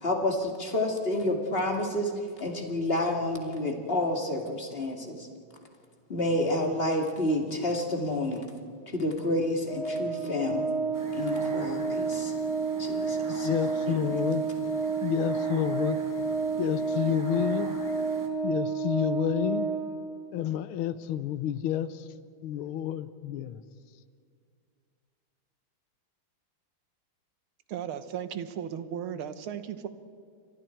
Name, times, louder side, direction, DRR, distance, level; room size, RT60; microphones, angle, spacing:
voice 1, 0.0-2.1 2.4-5.3 6.1-8.4 8.9-10.7 11.1-12.3 12.8-13.5 13.9-14.1, left 1 dB, 30° left, 2 dB, 2.4 m, -29 dB
Organ, 9.6-20.4, right 4 dB, 30° right, 4.3 m, -30 dB
sound 1, 10.9-18.3, right 1 dB, 10° right, 1.9 m, -45 dB
voice 2, 13.4-14.4 15.0-16.0 16.6-17.7 18.4-19.7 20.3-22.1 22.4-23.6, left 11 dB, 85° left, 14 dB, 1.7 m, -29 dB
voice 3, 27.7-29.9, right 9 dB, 85° right, 11 dB, 1.9 m, -36 dB
29.5 x 24.5 x 4.6 m, 2.2 s
omnidirectional pair, 2.3 m